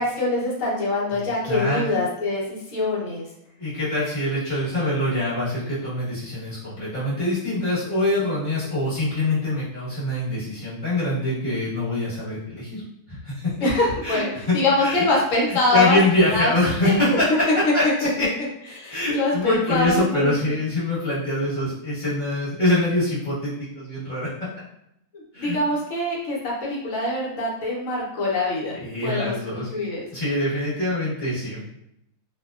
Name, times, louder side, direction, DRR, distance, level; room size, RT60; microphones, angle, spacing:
voice 1, 0.0-3.3 13.6-16.0 16.3-16.5 16.8-17.2 17.8-18.1 18.7-20.6 25.1-28.8 29.0-30.1, left 2 dB, 60° left, -4 dB, 1.0 m, -24 dB
voice 2, 1.1-1.8 3.6-12.8 13.1-13.7 14.0-14.2 14.5-15.0 15.5-17.3 17.7-18.3 18.9-24.3 25.3-25.6 28.7-29.7 30.1-31.8, left 1 dB, 35° left, -10 dB, 1.1 m, -24 dB
2.7 x 2.1 x 2.3 m, 0.80 s
omnidirectional pair, 1.6 m